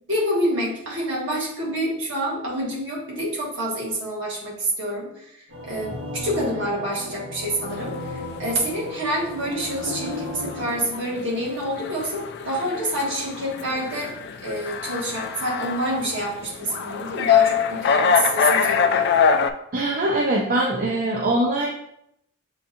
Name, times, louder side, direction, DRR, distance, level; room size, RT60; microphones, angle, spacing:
voice 1, 0.1-14.1 14.4-19.1, right 1 dB, 60° right, -4 dB, 1.6 m, -27 dB
sound 1, 5.5-10.8, left 1 dB, 80° right, 1.5 m, -35 dB
sound 2, 7.7-19.5, left 6 dB, 50° left, 0.3 m, -24 dB
voice 2, 19.7-21.7, right 1 dB, 40° right, -1 dB, 0.5 m, -22 dB
7.1 x 2.6 x 2.8 m, 0.77 s
head